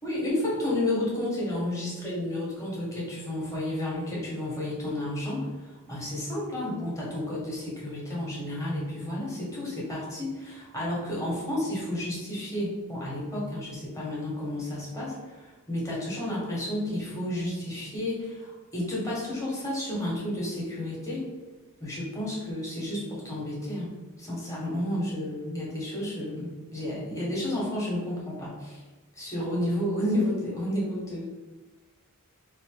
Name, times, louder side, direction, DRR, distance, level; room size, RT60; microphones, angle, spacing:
voice 1, 0.0-21.3 21.8-28.8 29.1-31.3, left 1 dB, 15° left, -6 dB, 1.4 m, -31 dB
4.1 x 2.7 x 3.8 m, 1.2 s
head